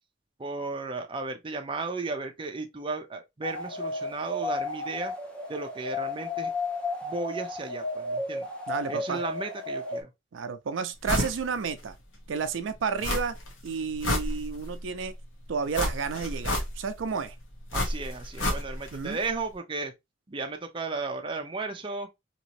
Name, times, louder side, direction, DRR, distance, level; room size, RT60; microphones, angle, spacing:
voice 1, 0.4-5.1 5.5-6.5 7.0-8.5 8.9-10.1 17.7-19.9 20.3-22.1, right 3 dB, 25° right, 0.5 m, -34 dB
sound 1, 3.4-10.0, left 2 dB, 5° left, 0.8 m, -33 dB
voice 2, 8.7-9.2 10.3-12.0 12.3-13.3 13.6-15.1 15.5-17.3 18.9-19.2, right 5 dB, 85° right, 0.4 m, -31 dB
sound 2, 11.1-11.4 11.8-11.9 13.0-13.5 13.8-14.8 15.7-17.0 17.7-19.0 19.2-19.3, left 1 dB, 85° left, 1.1 m, -29 dB
2.9 x 2.7 x 2.9 m
head